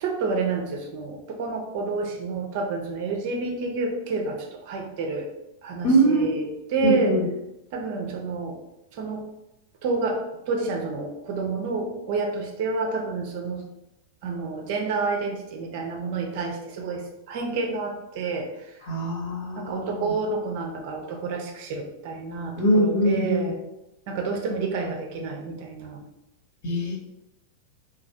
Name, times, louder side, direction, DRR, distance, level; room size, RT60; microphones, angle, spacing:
voice 1, 0.0-5.3 5.6-7.2 7.7-8.6 9.0-9.2 9.8-10.2 10.5-13.6 14.2-18.5 19.6-23.6 24.1-26.0, right 3 dB, 50° right, 2 dB, 0.5 m, -29 dB
voice 2, 5.8-6.3 6.8-7.2 18.8-20.1 22.6-23.5 26.6-26.9, right 1 dB, 55° left, -3 dB, 1.1 m, -22 dB
3.1 x 2.3 x 2.6 m, 0.90 s
figure-of-eight pair, 90°, 0 cm